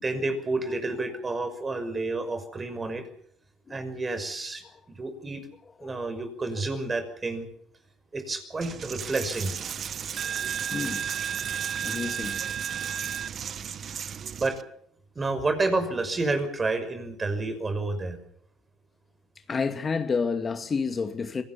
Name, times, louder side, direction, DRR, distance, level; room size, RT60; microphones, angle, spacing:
voice 1, 0.0-3.0 3.7-5.4 5.8-7.5 8.1-9.5 14.4-14.6 15.2-18.2, right 3 dB, 25° right, 5.9 m, -29 dB
voice 2, 5.8-6.2 6.6-6.7 10.3-10.4 10.7-11.1 11.8-12.4 19.5-21.4, left 5 dB, 30° left, 2.3 m, -30 dB
Coin (dropping), 8.6-14.6, right 8 dB, 45° right, 1.3 m, -33 dB
25.0 x 18.5 x 7.2 m
supercardioid pair, 95°, 0 cm